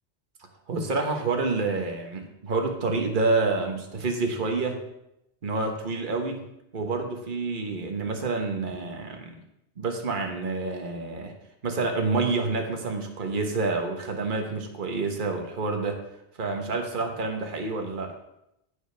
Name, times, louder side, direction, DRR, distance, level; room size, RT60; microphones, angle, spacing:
voice 1, 0.7-4.8 5.4-6.4 6.7-9.3 9.8-11.3 11.6-16.0 16.4-18.1, right 3 dB, 50° right, 3 dB, 1.3 m, -28 dB
14.0 x 5.0 x 3.4 m, 0.85 s
omnidirectional pair, 1.1 m